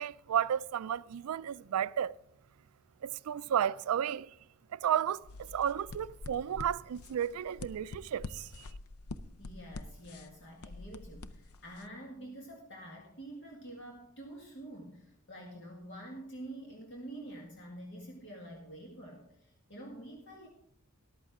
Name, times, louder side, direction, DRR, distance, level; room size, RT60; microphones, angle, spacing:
voice 1, 0.0-2.1 3.0-4.3 4.7-8.6, right 9 dB, 75° right, 0.3 m, -33 dB
sound 1, 5.2-11.9, left 3 dB, 80° left, 0.6 m, -46 dB
voice 2, 9.4-20.5, right 1 dB, 55° left, 2.0 m, -47 dB
14.0 x 11.5 x 3.6 m
head